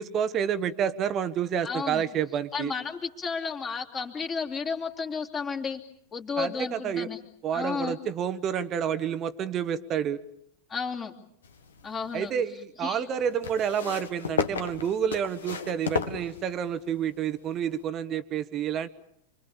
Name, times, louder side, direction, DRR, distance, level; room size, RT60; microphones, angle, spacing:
voice 1, 0.0-2.7 6.4-7.1 7.4-10.2 12.1-18.9, right 8 dB, 30° right, 12 dB, 1.1 m, -29 dB
voice 2, 1.6-2.0 2.5-5.8 6.1-7.2 7.5-8.0 10.7-11.2 11.8-12.3 12.8-13.0, left 5 dB, 20° left, 3 dB, 2.9 m, -32 dB
sound 1, 11.4-12.3 13.4-16.9 17.8-17.9, left 6 dB, 65° left, 1.8 m, -33 dB
29.0 x 23.5 x 7.2 m, 0.73 s
figure-of-eight pair, 90°, 0 cm